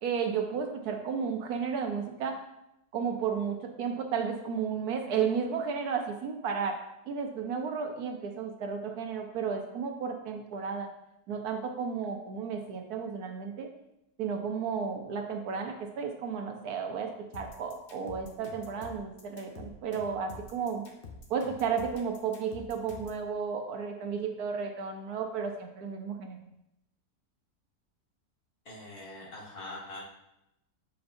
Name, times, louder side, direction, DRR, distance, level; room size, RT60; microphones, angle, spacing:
voice 1, 0.0-2.4 2.9-6.8 7.1-10.9 11.3-13.7 14.2-20.8 21.3-26.4, right 6 dB, 80° right, 4 dB, 1.3 m, -33 dB
sound 1, 17.3-23.2, left 4 dB, 45° left, 0.9 m, -47 dB
voice 2, 28.7-30.0, left 2 dB, 70° left, -6 dB, 2.2 m, -43 dB
6.8 x 5.3 x 2.6 m, 0.86 s
omnidirectional pair, 1.6 m